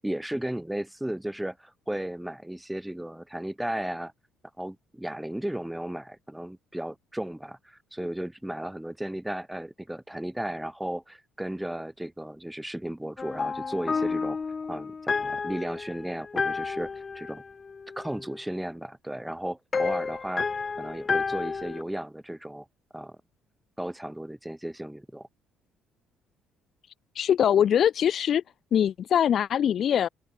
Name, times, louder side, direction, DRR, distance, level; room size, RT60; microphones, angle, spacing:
voice 1, 0.0-4.1 4.6-14.4 14.7-17.4 18.0-20.5 20.8-22.7 22.9-23.2 23.8-25.3, right 1 dB, 5° right, 4.1 m, -35 dB
sound 1, 13.2-18.4 19.7-21.8, left 5 dB, 35° left, 1.8 m, -31 dB
voice 2, 27.2-28.4 28.7-30.1, left 9 dB, 50° left, 0.8 m, -22 dB
open air
hypercardioid pair, 50°, 0 cm